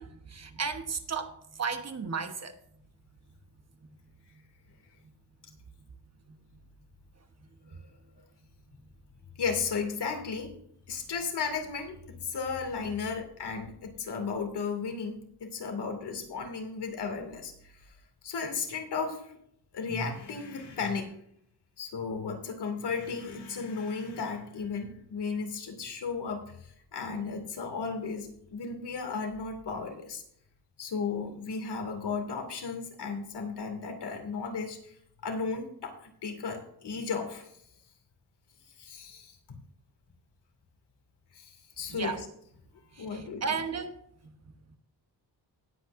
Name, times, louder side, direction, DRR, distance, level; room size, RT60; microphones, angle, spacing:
voice 1, 0.0-2.6 3.8-3.9 6.3-6.4 41.9-42.2 42.9-44.0 44.2-44.3, right 5 dB, 40° right, 7 dB, 1.2 m, -34 dB
voice 2, 9.4-10.5 10.9-17.8 18.2-19.4 19.7-21.1 21.8-30.2 30.8-34.9 35.2-37.5 38.8-39.4 41.3-42.3 43.0-43.6, left 5 dB, 75° left, 4 dB, 2.7 m, -35 dB
19.0 x 8.4 x 2.6 m, 0.71 s
wide cardioid pair, 175°, 41 cm